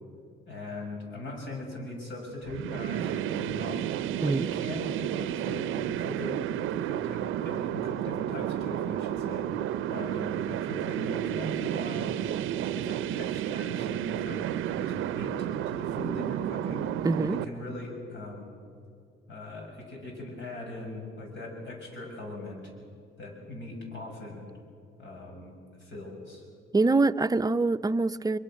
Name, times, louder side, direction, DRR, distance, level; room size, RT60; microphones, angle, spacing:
voice 1, 0.5-3.8 4.2-6.4 6.7-12.1 12.6-16.9 17.2-18.5 19.3-22.6 23.2-24.5 25.0-25.5 25.8-26.4, left 2 dB, 70° left, 1 dB, 6.8 m, -40 dB
sound 1, 2.5-17.4, right 11 dB, 85° right, 0.6 m, -31 dB
voice 2, 17.0-17.4 26.7-28.4, right 3 dB, 20° right, 11 dB, 0.6 m, -24 dB
23.5 x 23.0 x 6.4 m, 2.3 s
cardioid pair, 90°, 20 cm